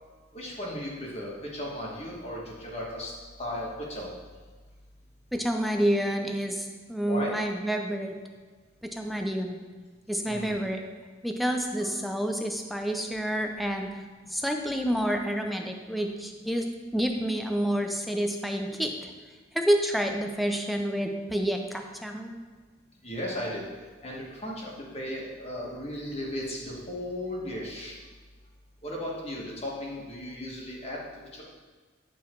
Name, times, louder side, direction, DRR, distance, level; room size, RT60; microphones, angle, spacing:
voice 1, 0.3-3.1 3.4-4.1 7.1-7.4 10.2-10.6 23.0-23.6 24.0-27.9 28.8-31.0 31.3-31.4, left 1 dB, 30° left, -3 dB, 1.5 m, -35 dB
voice 2, 5.3-8.1 8.8-9.6 10.1-10.8 11.2-13.9 14.3-19.1 19.5-22.4, equal, ahead, 3 dB, 0.5 m, -29 dB
9.5 x 3.7 x 4.5 m, 1.5 s
head